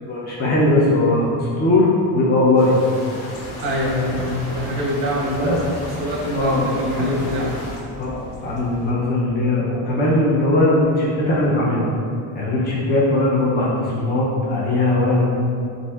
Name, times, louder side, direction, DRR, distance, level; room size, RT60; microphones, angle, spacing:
voice 1, 0.1-2.8 5.2-5.5 6.3-7.5 8.0-11.8 12.3-15.3, left 2 dB, 25° left, -6 dB, 0.6 m, -19 dB
sound 1, 2.6-7.8, left 1 dB, 85° left, 1.1 m, -36 dB
sound 2, 3.3-8.9, equal, 60° left, 0.9 m, -37 dB
voice 2, 3.6-7.5, equal, 35° right, -4 dB, 0.8 m, -25 dB
7.2 x 2.6 x 2.4 m, 2.4 s
cardioid pair, 170°, 40 cm